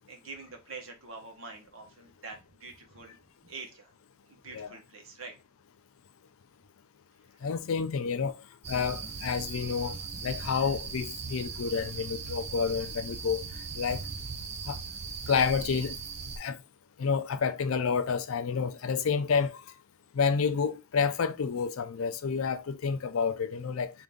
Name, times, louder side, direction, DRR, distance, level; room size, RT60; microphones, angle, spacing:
voice 1, 0.1-3.2 3.4-3.9 4.3-5.3, right 4 dB, 75° right, 1.1 m, -45 dB
voice 2, 7.4-10.0 10.2-13.4 13.8-14.0 14.7-14.8 15.3-16.0 16.4-16.6 17.0-19.6 20.1-23.9, left 6 dB, 80° left, 0.4 m, -29 dB
sound 1, 8.6-16.4, right 5 dB, 35° right, 0.6 m, -39 dB
3.7 x 2.6 x 3.5 m
head